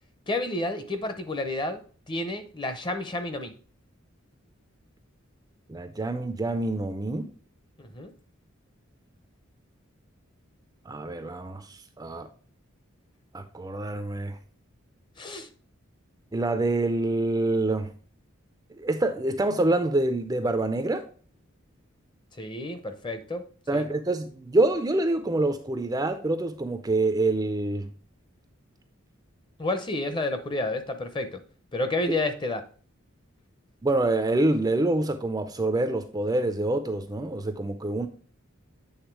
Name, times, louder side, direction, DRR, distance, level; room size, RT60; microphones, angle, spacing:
voice 1, 0.3-3.5 7.8-8.1 15.2-15.5 22.4-23.5 23.7-23.8 29.6-31.4 31.7-32.7, left 2 dB, 20° left, 0.7 m, -30 dB
voice 2, 5.7-7.3 10.9-12.3 13.3-14.4 16.3-17.9 18.8-21.0 23.7-27.9 33.8-38.1, right 2 dB, 15° right, 0.4 m, -26 dB
8.1 x 3.5 x 4.6 m
head